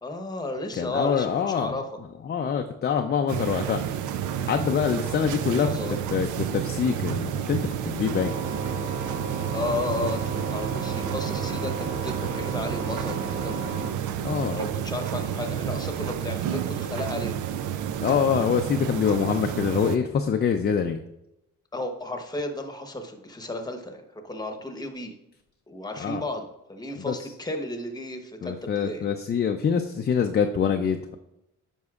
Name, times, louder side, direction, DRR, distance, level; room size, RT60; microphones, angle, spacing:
voice 1, 0.0-1.9 5.5-6.0 9.5-13.6 14.5-17.4 21.7-25.1 25.7-29.1, left 2 dB, 15° left, 5 dB, 1.0 m, -33 dB
voice 2, 0.8-1.7 2.3-3.8 4.4-5.7 6.1-8.3 14.2-14.6 18.0-21.0 26.0-26.2 27.1-27.2 28.4-31.1, left 7 dB, 35° left, 5 dB, 0.5 m, -25 dB
sound 1, 3.3-20.0, right 9 dB, 80° right, 0.5 m, -30 dB
sound 2, 8.1-13.9, right 3 dB, 40° right, 1.5 m, -35 dB
9.4 x 5.5 x 2.4 m, 0.87 s
cardioid pair, 90°, 30 cm